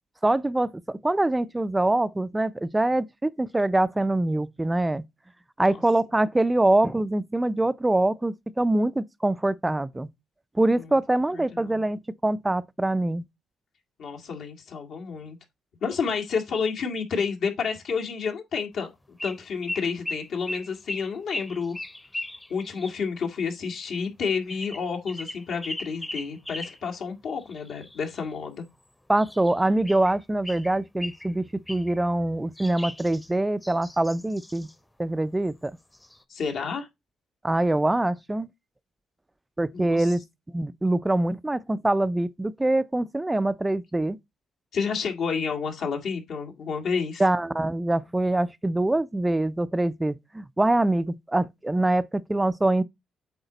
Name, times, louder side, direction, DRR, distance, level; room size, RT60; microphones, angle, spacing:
voice 1, 0.2-5.0 5.6-10.1 10.6-13.2 29.1-34.7 35.0-35.7 37.4-38.5 39.6-40.2 40.5-44.2 47.2-52.8, right 1 dB, 15° right, 0.4 m, -24 dB
voice 2, 11.3-11.8 14.0-15.4 15.8-18.9 19.2-21.8 22.5-28.6 36.3-36.9 39.7-40.1 44.7-47.2, left 5 dB, 70° left, 2.0 m, -30 dB
sound 1, 19.2-19.4 19.7-23.0 24.5-26.8 27.4-28.4 29.2-30.2 30.4-31.3 31.7-32.0 32.6-34.7 35.6-35.7 35.9-36.2, left 1 dB, 10° left, 0.8 m, -38 dB
8.0 x 5.0 x 4.0 m
cardioid pair, 90°, 0 cm